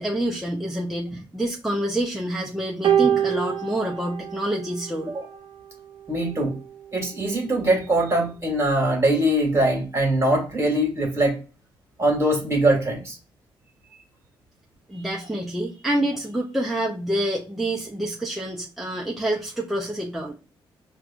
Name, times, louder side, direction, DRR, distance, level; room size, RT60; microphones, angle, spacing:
voice 1, 0.0-5.1 14.9-20.3, right 1 dB, ahead, -3 dB, 0.6 m, -27 dB
sound 1, 2.8-5.3 6.3-6.5, right 9 dB, 60° right, 0.6 m, -25 dB
voice 2, 6.1-6.5 6.9-11.4 12.0-13.2, right 1 dB, 30° right, 1 dB, 1.6 m, -22 dB
4.6 x 2.3 x 2.4 m, 0.34 s
cardioid pair, 85°, 9 cm